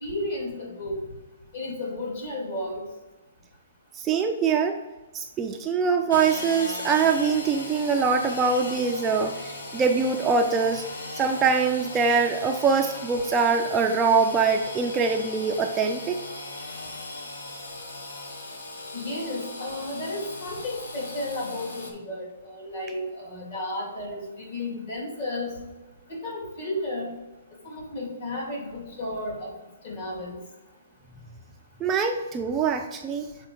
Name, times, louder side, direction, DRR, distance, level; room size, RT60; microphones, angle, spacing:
voice 1, 0.0-1.0 1.5-2.8 18.9-25.5 26.1-27.1 27.6-29.5 29.8-30.4, left 1 dB, 45° left, -1 dB, 2.1 m, -33 dB
voice 2, 3.9-4.8 5.1-10.8 11.1-16.2 31.8-33.3, right 5 dB, 15° right, 3 dB, 0.3 m, -23 dB
Engine / Sawing, 6.1-21.9, left 2 dB, 80° left, 1.2 m, -38 dB
6.7 x 4.4 x 3.7 m, 1.2 s
hypercardioid pair, 165°, 0 cm